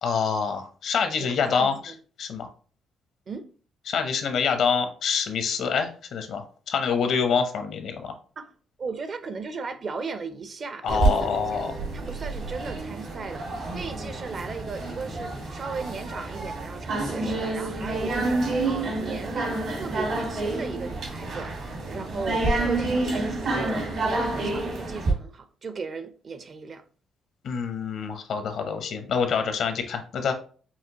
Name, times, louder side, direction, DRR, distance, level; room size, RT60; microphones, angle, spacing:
voice 1, 0.0-1.9 2.2-2.5 3.9-8.1 10.8-11.8 27.4-30.3, left 6 dB, 70° left, 0.7 m, -26 dB
voice 2, 1.2-2.0 3.3-3.5 8.4-8.5 8.8-11.6 11.9-21.5 21.9-26.8, right 4 dB, 50° right, 0.5 m, -36 dB
sound 1, 10.9-25.1, right 2 dB, 70° right, 1.7 m, -28 dB
5.7 x 2.5 x 2.8 m
cardioid pair, 90°, 0 cm